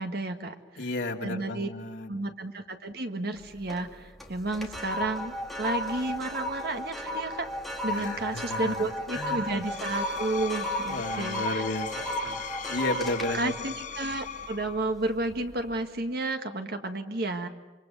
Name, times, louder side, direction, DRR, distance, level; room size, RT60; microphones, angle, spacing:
voice 1, 0.0-0.9 1.2-1.7 2.1-7.5 7.8-11.6 13.3-17.5, right 2 dB, 60° right, 6 dB, 1.8 m, -32 dB
voice 2, 0.8-2.1 7.9-8.7 9.1-9.5 10.8-12.4 12.7-13.5, left 2 dB, 85° left, 1 dB, 2.3 m, -33 dB
sound 1, 3.4-3.9 4.2-14.8 15.2-15.5, equal, ahead, 2.5 m, -34 dB
Screech, 9.5-15.0, left 7 dB, 45° left, 0.9 m, -39 dB
27.5 x 24.5 x 6.8 m, 1.3 s
head